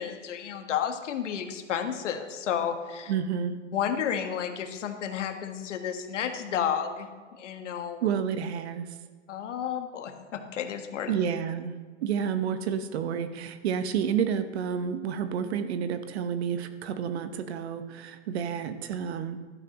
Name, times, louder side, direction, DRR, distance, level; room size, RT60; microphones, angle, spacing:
voice 1, 0.0-3.1 3.7-8.1 9.3-11.1, left 8 dB, 65° left, 6 dB, 1.6 m, -32 dB
voice 2, 3.1-3.6 8.0-8.9 11.1-11.7 12.0-19.4, right 7 dB, 55° right, 10 dB, 1.1 m, -30 dB
14.5 x 12.0 x 3.0 m, 1.4 s
hypercardioid pair, 130°, 38 cm